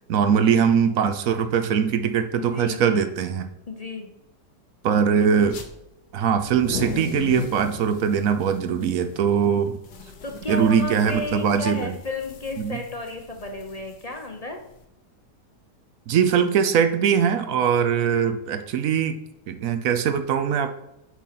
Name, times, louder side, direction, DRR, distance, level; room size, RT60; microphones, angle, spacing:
voice 1, 0.1-3.5 4.8-5.6 6.1-9.8 10.5-11.9 12.6-12.8 16.1-20.8, right 7 dB, 65° right, 9 dB, 0.9 m, -21 dB
voice 2, 2.4-3.1 3.7-4.1 10.2-14.6, left 2 dB, 45° left, 3 dB, 0.5 m, -33 dB
sound 1, 5.4-5.7 6.3-14.8, left 6 dB, 75° left, 1.5 m, -37 dB
8.4 x 3.9 x 5.8 m, 0.87 s
omnidirectional pair, 1.8 m